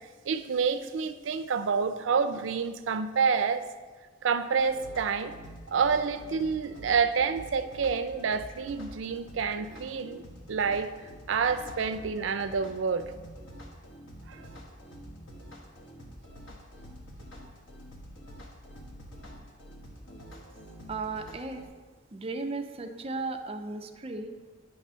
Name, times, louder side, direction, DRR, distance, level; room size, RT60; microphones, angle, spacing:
voice 1, 0.3-3.6 4.2-5.3 5.7-10.9 11.3-13.1 14.3-14.4, right 5 dB, 80° right, 10 dB, 0.4 m, -28 dB
sound 1, 4.6-21.7, equal, 85° left, 1.2 m, -47 dB
voice 2, 20.9-21.7 22.1-24.3, right 3 dB, 30° right, 6 dB, 0.5 m, -35 dB
9.5 x 3.3 x 5.6 m, 1.4 s
head